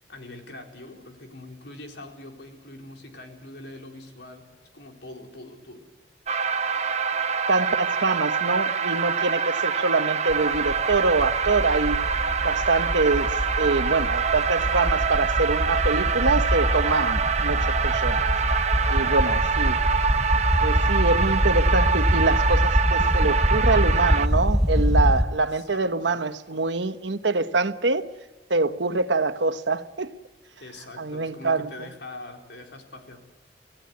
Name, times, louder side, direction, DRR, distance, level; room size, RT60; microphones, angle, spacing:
voice 1, 0.1-5.9 19.0-19.4 25.5-26.3 30.6-33.2, left 2 dB, 75° left, 4.1 m, -43 dB
sound 1, 6.3-24.3, right 6 dB, 40° right, 0.9 m, -25 dB
voice 2, 7.5-12.0 12.4-18.3 18.9-19.8 20.6-28.1 28.5-30.1 31.0-31.9, right 3 dB, 90° right, 1.1 m, -25 dB
sound 2, 10.3-25.2, equal, 5° right, 0.8 m, -25 dB
26.0 x 16.5 x 9.7 m
head